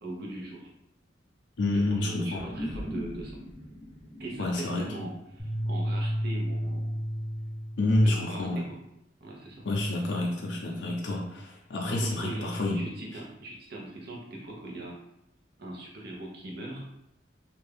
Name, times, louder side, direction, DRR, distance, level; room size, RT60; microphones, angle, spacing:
voice 1, 0.0-0.7 1.7-3.4 4.2-6.9 8.0-8.8 9.2-9.6 10.0-10.1 11.9-14.9 15.6-16.8, right 1 dB, 60° right, -2 dB, 0.8 m, -41 dB
voice 2, 1.6-2.4 4.4-5.1 7.8-8.7 9.6-12.8, left 2 dB, 65° left, -2 dB, 0.5 m, -28 dB
sound 1, 2.3-7.1, equal, 10° right, 1.1 m, -41 dB
sound 2, 5.4-7.9, equal, 10° left, 0.7 m, -31 dB
2.6 x 2.3 x 3.4 m, 0.84 s
head